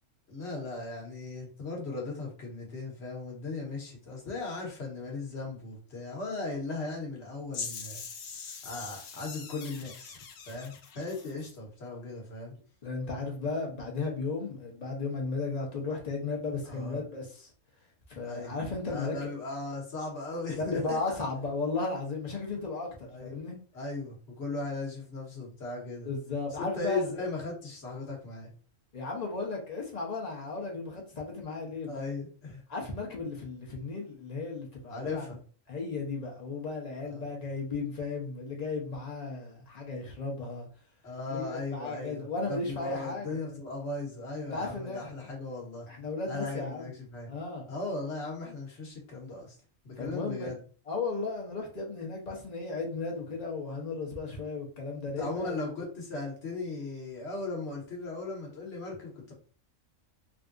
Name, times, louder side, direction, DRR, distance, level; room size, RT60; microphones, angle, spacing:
voice 1, 0.3-8.0 8.6-10.2 10.5-12.5 16.6-17.0 18.2-18.6 18.9-21.2 23.1-23.5 23.7-26.1 26.6-28.5 31.9-32.6 34.9-35.4 37.0-37.2 41.0-45.9 46.3-47.3 47.7-49.6 49.8-50.6 55.2-59.3, left 3 dB, 55° left, 1.3 m, -37 dB
sound 1, 7.5-11.6, left 6 dB, 75° left, 1.0 m, -42 dB
voice 2, 12.8-17.5 18.1-19.1 20.6-23.6 26.0-27.2 28.9-32.0 32.7-35.3 35.7-40.7 41.3-43.6 44.5-45.1 45.9-46.9 47.3-47.6 50.0-50.5 50.9-55.6, left 3 dB, 35° left, 0.9 m, -35 dB
3.4 x 2.6 x 2.5 m
omnidirectional pair, 1.4 m